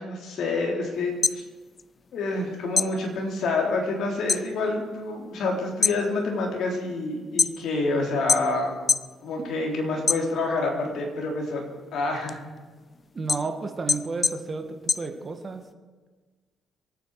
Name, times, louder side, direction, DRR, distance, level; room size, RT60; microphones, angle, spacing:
voice 1, 0.0-1.4 2.1-8.8 9.2-11.6 11.9-12.4, left 3 dB, 70° left, 0 dB, 3.8 m, -27 dB
sound 1, 1.0-2.4 2.7-4.5 4.8-5.3 5.7-7.9 8.3-9.1 9.5-10.7 11.2-15.7, left 4 dB, 35° left, 0.4 m, -26 dB
voice 2, 13.1-15.6, right 4 dB, 35° right, 5 dB, 1.9 m, -32 dB
26.0 x 9.3 x 5.0 m, 1.4 s
cardioid pair, 90°, 0 cm